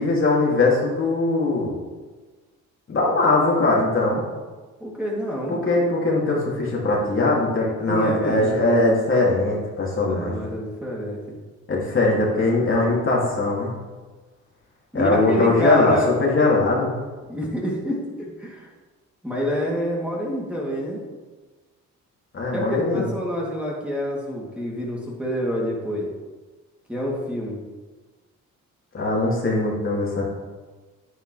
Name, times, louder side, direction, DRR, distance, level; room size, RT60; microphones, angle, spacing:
voice 1, 0.0-1.7 2.9-4.2 5.5-10.4 11.7-13.7 14.9-16.9 22.3-23.0 28.9-30.2, left 2 dB, 45° left, -4 dB, 2.8 m, -21 dB
voice 2, 4.8-5.6 7.8-8.7 10.0-11.4 14.9-16.1 17.3-18.7 19.2-21.0 22.5-26.1 26.9-27.6, equal, 5° right, -4 dB, 3.0 m, -27 dB
9.9 x 9.2 x 3.4 m, 1.3 s
cardioid pair, 90°, 30 cm